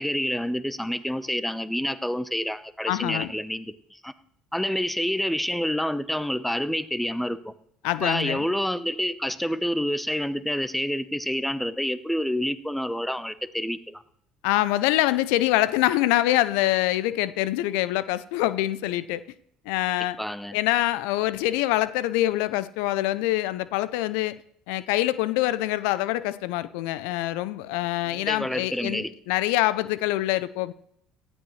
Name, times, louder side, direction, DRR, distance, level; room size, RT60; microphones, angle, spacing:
voice 1, 0.0-4.1 4.5-7.5 8.0-14.0 20.2-20.6 28.1-29.1, equal, 5° left, 14 dB, 0.8 m, -28 dB
voice 2, 2.9-3.3 7.8-8.5 14.4-19.2 19.7-20.2 20.5-24.4 24.7-30.7, left 15 dB, 75° left, 17 dB, 0.4 m, -25 dB
17.5 x 13.0 x 3.2 m, 0.71 s
hypercardioid pair, 65°, 3 cm